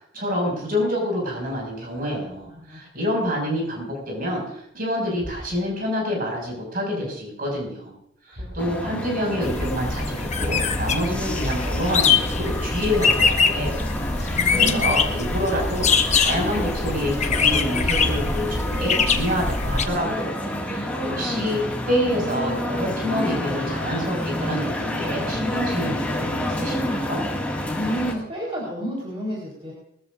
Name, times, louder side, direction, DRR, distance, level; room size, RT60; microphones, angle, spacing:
voice 1, 0.1-7.9 8.2-15.9 16.1-20.9 21.1-27.2, equal, 50° right, -1 dB, 6.5 m, -27 dB
sound 1, 2.2-2.7 3.2-3.3 3.9-4.5 5.1-6.0 7.6-9.3 11.4-12.2 14.3-15.4 15.8-16.5 17.6-18.5, equal, 65° right, 5.9 m, -40 dB
voice 2, 2.6-3.3 8.6-9.0 14.3-14.9 21.1-21.5 27.7-29.7, right 1 dB, 30° right, -4 dB, 4.5 m, -31 dB
sound 2, 8.6-28.1, left 1 dB, 5° left, 2.3 m, -29 dB
sound 3, 9.4-19.8, left 5 dB, 40° left, 1.0 m, -23 dB
22.0 x 14.0 x 2.7 m, 0.71 s
head